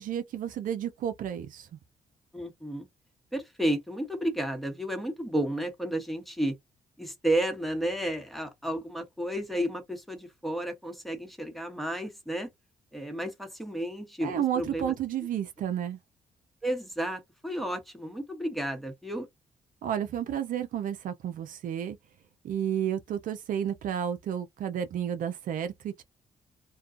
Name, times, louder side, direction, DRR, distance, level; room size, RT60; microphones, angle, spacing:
voice 1, 0.0-1.7 14.2-16.0 19.8-22.0 22.4-26.0, right 9 dB, 70° right, 0.5 m, -31 dB
voice 2, 2.3-2.9 3.3-6.6 7.0-12.5 12.9-14.9 16.6-19.3, right 1 dB, ahead, 1.1 m, -32 dB
2.3 x 2.2 x 2.5 m
supercardioid pair, 55°, 15 cm